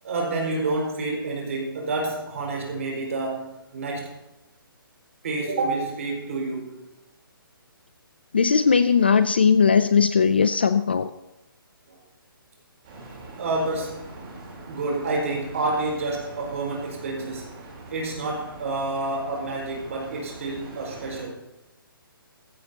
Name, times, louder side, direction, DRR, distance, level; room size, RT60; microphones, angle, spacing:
voice 1, 0.0-4.2 5.2-6.8 13.4-14.1 14.7-17.5 17.9-21.4, right 2 dB, 35° right, -1 dB, 4.8 m, -28 dB
voice 2, 8.3-11.1, left 6 dB, 25° left, 12 dB, 0.4 m, -19 dB
sound 1, 12.8-21.2, right 2 dB, 20° right, 3.5 m, -42 dB
17.0 x 16.5 x 2.8 m, 0.97 s
hypercardioid pair, 180°, 12 cm